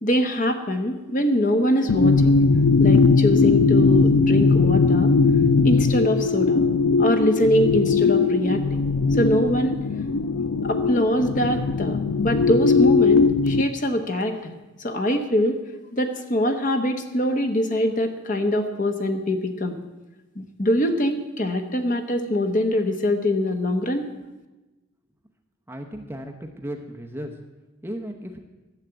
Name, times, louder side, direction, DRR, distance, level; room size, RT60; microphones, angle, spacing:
voice 1, 0.0-2.4 2.8-5.1 5.6-6.6 7.0-8.9 9.1-9.8 10.6-14.5 14.8-15.6 15.9-19.8 20.3-24.1, left 1 dB, 40° left, 6 dB, 1.1 m, -23 dB
sound 1, 1.9-13.6, left 4 dB, 85° left, 0.5 m, -19 dB
voice 2, 25.7-27.3 27.8-28.4, equal, 10° right, 3 dB, 0.8 m, -35 dB
12.5 x 7.3 x 8.1 m, 1.1 s
head